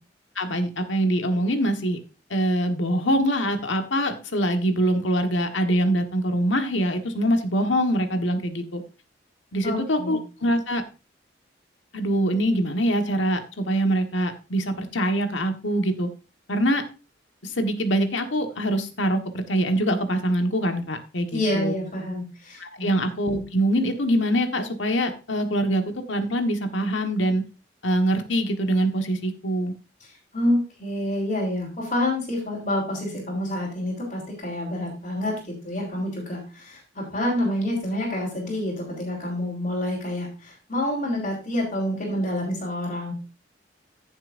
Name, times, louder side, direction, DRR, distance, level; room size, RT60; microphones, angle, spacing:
voice 1, 0.3-2.0 2.3-8.8 9.5-10.8 11.9-16.1 16.5-16.8 17.4-21.7 22.6-27.4 27.8-29.7, right 1 dB, 85° left, 6 dB, 1.5 m, -24 dB
voice 2, 9.6-10.2 21.3-23.0 30.3-43.1, left 1 dB, 40° left, -6 dB, 3.8 m, -28 dB
14.5 x 7.2 x 2.6 m, 0.32 s
head